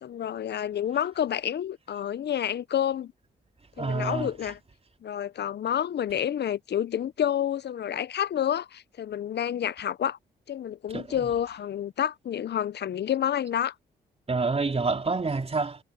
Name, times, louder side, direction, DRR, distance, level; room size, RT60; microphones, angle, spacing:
voice 1, 0.0-3.1 3.8-4.5 5.0-10.2 10.5-13.7, left 10 dB, 60° left, 1.1 m, -29 dB
voice 2, 3.8-4.5 10.9-11.3 14.3-15.8, right 4 dB, 30° right, 3.1 m, -28 dB
hypercardioid pair, 45°, 20 cm